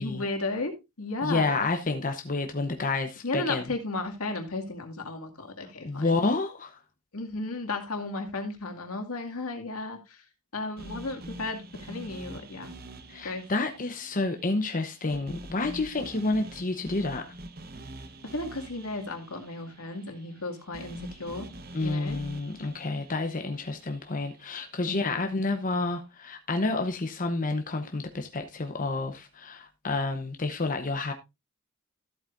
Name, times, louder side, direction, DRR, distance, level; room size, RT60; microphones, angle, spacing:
voice 1, 0.0-1.6 3.2-6.2 7.1-10.2 10.5-12.7 13.2-13.5 18.2-21.5 21.8-22.2 24.9-25.3, left 3 dB, 85° left, 2.2 m, -34 dB
voice 2, 1.2-3.6 5.8-6.8 13.1-17.4 21.7-31.1, left 3 dB, 40° left, 0.9 m, -29 dB
sound 1, 10.8-24.9, right 1 dB, 45° right, 1.0 m, -45 dB
13.5 x 8.1 x 2.5 m
head